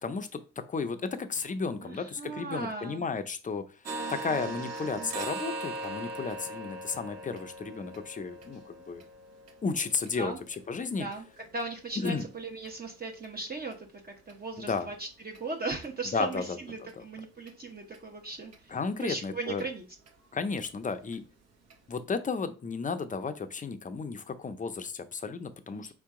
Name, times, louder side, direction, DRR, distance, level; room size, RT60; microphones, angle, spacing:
voice 1, 0.0-3.6 4.1-9.0 9.6-11.1 12.0-12.2 14.6-14.9 16.1-16.4 16.8-17.0 18.7-19.7 20.3-21.2 21.9-25.9, left 4 dB, 25° left, 9 dB, 0.6 m, -33 dB
voice 2, 1.8-3.1 3.9-4.5 5.0-5.1 10.2-10.4 11.0-11.3 11.5-19.8 25.7-25.9, right 3 dB, 30° right, 1 dB, 0.9 m, -38 dB
sound 1, 3.8-11.6 12.1-12.2 12.6-12.8 13.2-13.3 13.7-13.8 14.3-14.4 14.8-14.9 15.3-15.4 15.8-15.9 16.4-16.5 16.9-17.0 17.5-17.6 17.9-18.0 18.5-18.6 19.0-19.1 19.6-19.7 20.1-20.2 20.6-20.7 21.1-21.2 21.7-21.8, right 2 dB, 55° right, 1.2 m, -40 dB
4.4 x 2.9 x 3.6 m, 0.33 s
cardioid pair, 90°, 30 cm